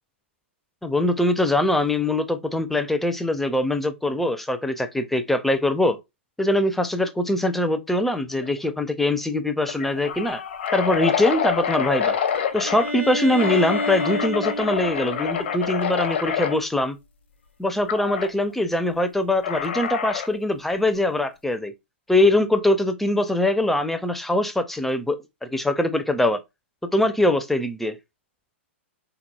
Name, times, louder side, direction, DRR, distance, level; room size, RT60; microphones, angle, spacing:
voice 1, 0.8-6.0 6.4-10.4 10.7-12.2 12.5-17.0 17.6-21.7 22.1-26.4 26.9-27.9, left 1 dB, 5° left, 0.4 m, -22 dB
sound 1, 8.4-8.7 9.0-9.1 9.6-12.9 13.4-16.6 17.9-18.3 19.4-20.4, left 8 dB, 60° left, 0.6 m, -27 dB
Bowed string instrument, 12.6-16.4, equal, 90° left, 1.0 m, -30 dB
3.6 x 2.9 x 2.2 m
figure-of-eight pair, 110°, 7 cm